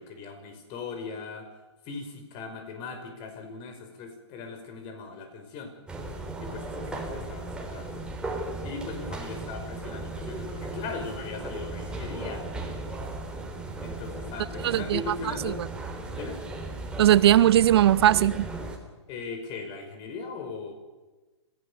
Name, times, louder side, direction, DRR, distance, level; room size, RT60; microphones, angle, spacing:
voice 1, 0.0-1.5 1.9-5.7 6.4-7.9 8.6-12.5 13.8-15.6 16.1-16.4 19.1-20.7, left 4 dB, 35° left, 5.2 m, -39 dB
sound 1, 5.9-18.8, right 2 dB, 5° right, 3.5 m, -36 dB
voice 2, 14.6-15.0 15.4-15.5 17.0-18.5, right 12 dB, 55° right, 0.7 m, -19 dB
26.5 x 16.5 x 6.9 m
hypercardioid pair, 135°, 15 cm